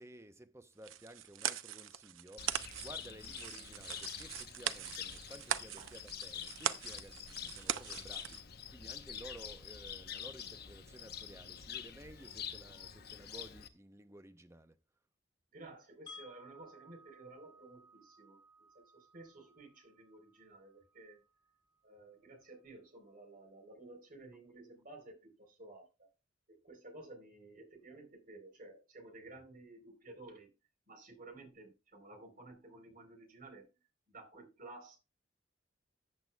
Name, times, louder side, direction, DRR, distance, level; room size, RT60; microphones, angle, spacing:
voice 1, 0.0-14.8, right 1 dB, 15° right, 0.7 m, -55 dB
sound 1, 0.8-8.4, right 10 dB, 85° right, 0.7 m, -41 dB
Cricket, 2.4-13.7, left 8 dB, 50° left, 0.9 m, -47 dB
voice 2, 15.5-21.2 21.8-26.1 26.5-30.5 30.9-33.7 34.1-35.0, right 2 dB, 45° right, 3.8 m, -54 dB
Wind chime, 16.1-22.0, left 2 dB, 25° left, 3.6 m, -59 dB
14.0 x 8.9 x 2.3 m
head